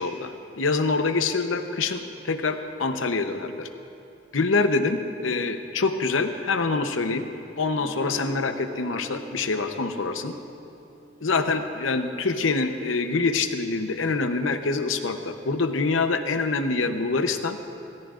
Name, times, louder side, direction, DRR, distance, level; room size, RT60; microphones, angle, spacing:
voice 1, 0.0-3.7 4.3-7.2 7.6-10.3 11.2-17.6, left 3 dB, 85° left, 7 dB, 0.8 m, -25 dB
Guitar, 7.7-13.7, right 1 dB, 45° right, 1.1 m, -44 dB
26.0 x 14.0 x 2.5 m, 2.8 s
head